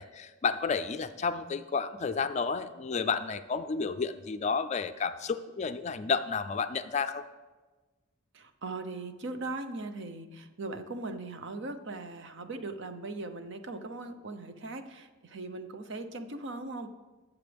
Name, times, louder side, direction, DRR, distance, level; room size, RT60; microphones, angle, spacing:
voice 1, 0.0-7.2, left 5 dB, 35° left, 10 dB, 0.4 m, -31 dB
voice 2, 8.3-16.9, right 2 dB, 60° right, 8 dB, 0.8 m, -39 dB
19.5 x 7.3 x 3.5 m, 1.2 s
head